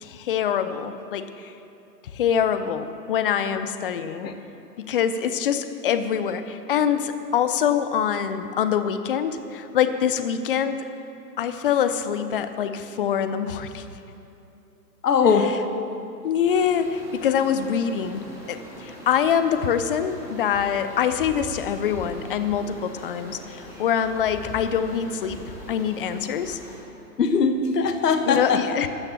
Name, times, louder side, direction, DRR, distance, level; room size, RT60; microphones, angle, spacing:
voice 1, 0.0-1.5 2.1-4.3 4.8-10.8 11.4-13.8 15.4-15.6 16.2-25.4 25.7-26.6 28.2-28.9, left 8 dB, 35° left, 10 dB, 0.6 m, -24 dB
voice 2, 15.0-15.6 27.2-28.6, left 5 dB, 70° left, 7 dB, 1.4 m, -20 dB
sound 1, 16.4-26.8, equal, 5° right, 2.2 m, -42 dB
13.5 x 6.5 x 7.1 m, 2.8 s
hypercardioid pair, 135°, 49 cm